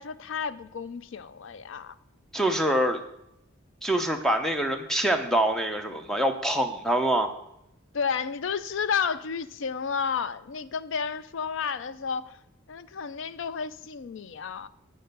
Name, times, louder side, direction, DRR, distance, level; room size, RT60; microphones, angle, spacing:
voice 1, 0.0-2.0 7.9-12.4 12.7-14.7, left 6 dB, 65° left, 0.4 m, -31 dB
voice 2, 2.3-3.0 3.8-7.3, right 1 dB, ahead, 0.6 m, -25 dB
8.6 x 5.5 x 6.6 m
head